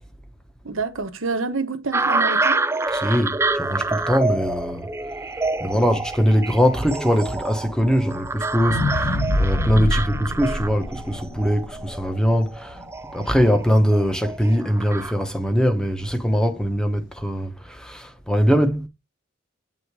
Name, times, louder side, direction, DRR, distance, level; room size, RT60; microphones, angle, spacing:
voice 1, 0.6-2.6 5.7-5.8 9.7-10.1, right 3 dB, 80° right, 1.1 m, -28 dB
sound 1, 1.9-15.1, right 3 dB, 15° right, 0.3 m, -27 dB
voice 2, 2.9-4.9 5.6-12.8 13.1-18.9, equal, 5° left, 0.9 m, -22 dB
sound 2, 8.6-12.8 13.3-13.4, left 1 dB, 60° left, 1.5 m, -26 dB
8.3 x 3.9 x 4.8 m
head